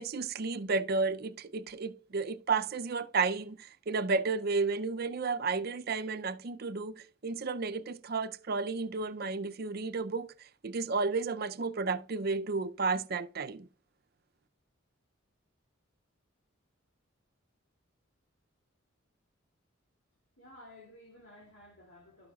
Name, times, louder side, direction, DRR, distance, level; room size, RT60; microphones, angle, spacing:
voice 1, 0.0-13.7, right 4 dB, 45° right, 0.5 m, -32 dB
voice 2, 20.4-22.3, left 1 dB, 60° left, 2.5 m, -54 dB
12.0 x 8.8 x 2.4 m
head